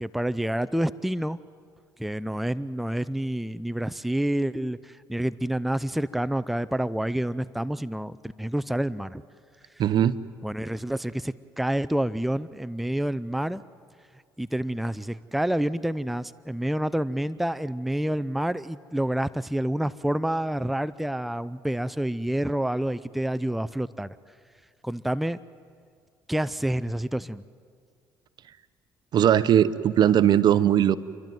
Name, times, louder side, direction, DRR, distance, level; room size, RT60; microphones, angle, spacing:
voice 1, 0.0-1.4 2.0-9.2 10.4-13.6 14.4-24.2 24.8-25.4 26.3-27.4, right 1 dB, ahead, 16 dB, 0.5 m, -28 dB
voice 2, 9.8-10.2 29.1-31.0, right 10 dB, 60° right, 16 dB, 0.8 m, -19 dB
30.0 x 12.0 x 9.3 m, 2.1 s
supercardioid pair, 75°, 8 cm